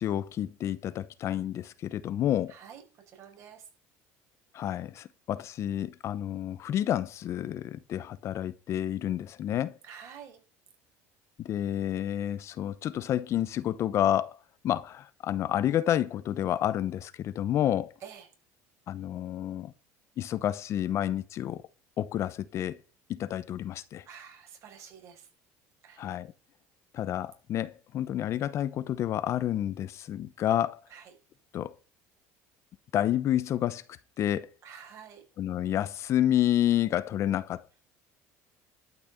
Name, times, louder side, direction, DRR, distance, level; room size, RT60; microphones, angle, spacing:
voice 1, 0.0-2.5 4.5-9.8 11.4-14.4 14.6-17.9 18.9-19.7 20.2-21.6 22.0-22.8 23.1-24.0 26.0-26.3 26.9-30.8 31.5-31.7 32.9-33.8 34.2-34.5 35.4-37.8, left 11 dB, 45° left, 0.8 m, -29 dB
voice 2, 2.5-3.7 9.8-10.4 18.0-18.3 24.1-25.3 25.8-26.0 30.9-31.1 34.6-35.2, right 8 dB, 50° right, 5.4 m, -48 dB
12.0 x 6.1 x 8.3 m
cardioid pair, 125°, 7 cm